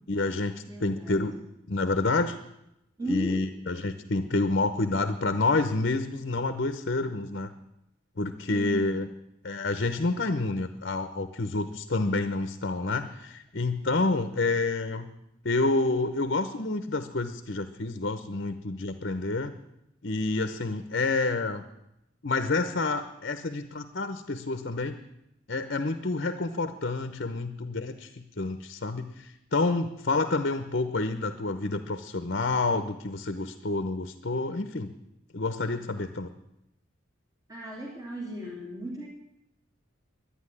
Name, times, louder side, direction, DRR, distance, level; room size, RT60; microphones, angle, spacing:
voice 1, 0.1-1.3 1.7-2.4 3.1-7.5 8.2-9.1 9.4-15.1 15.4-19.5 20.0-21.6 22.2-25.0 25.5-34.9 35.3-36.3, left 3 dB, 55° left, 9 dB, 0.9 m, -28 dB
voice 2, 0.7-1.3 3.0-3.4 8.5-9.0 37.5-39.1, right 1 dB, 20° right, -4 dB, 2.9 m, -36 dB
12.0 x 10.0 x 10.0 m, 0.85 s
head